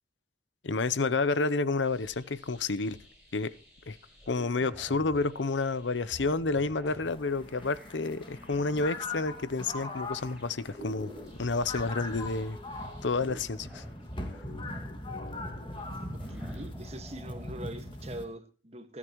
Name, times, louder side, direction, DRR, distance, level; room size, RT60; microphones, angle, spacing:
voice 1, 0.6-3.0 3.3-3.5 3.9-4.0 4.3-11.1 11.4-12.6 13.0-13.8, left 3 dB, 85° left, 0.7 m, -30 dB
sound 1, 1.8-17.5, equal, 5° right, 7.5 m, -50 dB
sound 2, 7.1-18.2, left 2 dB, 25° left, 2.1 m, -41 dB
voice 2, 16.1-19.0, right 1 dB, 35° right, 1.7 m, -43 dB
28.5 x 9.8 x 3.1 m
head